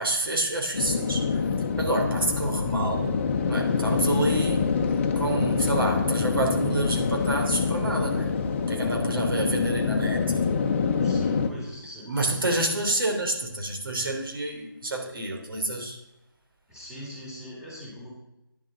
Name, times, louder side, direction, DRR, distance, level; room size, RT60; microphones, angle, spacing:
voice 1, 0.0-1.4 1.8-4.7 5.2-8.3 8.7-10.5 12.1-16.0, right 2 dB, 75° right, 2 dB, 3.4 m, -28 dB
sound 1, 0.7-11.5, left 5 dB, 35° left, 1.0 m, -26 dB
voice 2, 11.0-12.6 16.7-18.1, equal, 5° right, -6 dB, 3.0 m, -42 dB
11.0 x 10.0 x 3.9 m, 0.90 s
figure-of-eight pair, 160°, 12 cm